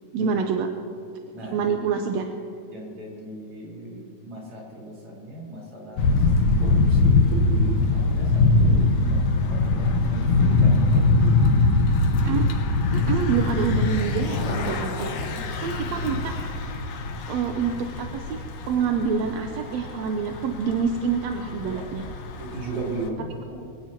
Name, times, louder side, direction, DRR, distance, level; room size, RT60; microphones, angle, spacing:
voice 1, 0.1-0.7 1.4-2.3 12.2-12.5 12.9-15.1 15.6-16.2 17.3-22.1, right 6 dB, 75° right, 4 dB, 1.9 m, -26 dB
voice 2, 1.3-2.0 2.7-11.6 14.3-16.4 21.6-21.9 22.4-23.6, right 2 dB, 50° right, -4 dB, 5.2 m, -37 dB
Thunder / Bicycle, 6.0-23.1, left 3 dB, 85° left, 2.8 m, -22 dB
24.5 x 17.5 x 3.0 m, 2.5 s
omnidirectional pair, 3.3 m